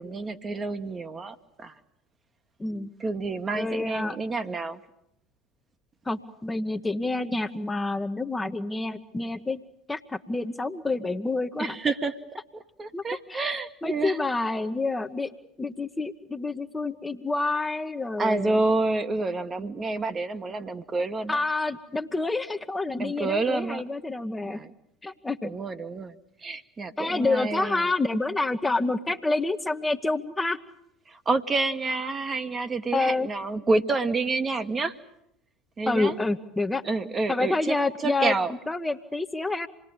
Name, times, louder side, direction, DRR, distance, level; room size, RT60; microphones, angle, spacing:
voice 1, 0.0-1.7 3.0-4.8 11.6-12.1 12.8-14.2 18.2-21.4 23.0-23.8 24.5-24.7 25.4-27.9 31.1-34.9 35.8-36.2 36.8-37.7 38.0-38.5, right 3 dB, 25° right, 8 dB, 1.3 m, -28 dB
voice 2, 3.5-4.2 6.0-9.6 9.9-11.8 12.9-13.0 13.3-13.5 13.8-15.3 15.6-18.6 21.3-24.6 25.0-25.5 27.0-30.6 32.9-33.3 35.9-36.8 37.3-38.3 38.7-39.7, left 3 dB, 15° left, 7 dB, 1.1 m, -28 dB
26.5 x 20.0 x 8.8 m, 0.78 s
figure-of-eight pair, 70°, 0 cm